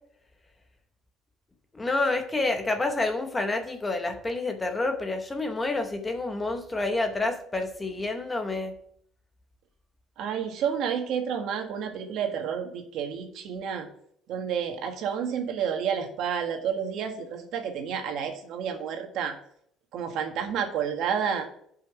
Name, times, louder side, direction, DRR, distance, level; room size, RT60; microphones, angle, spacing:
voice 1, 1.7-8.8, left 2 dB, 15° left, 6 dB, 0.8 m, -28 dB
voice 2, 10.2-13.9 14.3-19.3 19.9-21.5, right 7 dB, 60° right, 5 dB, 1.6 m, -30 dB
8.5 x 5.7 x 4.9 m, 0.66 s
cardioid pair, 170°, 0 cm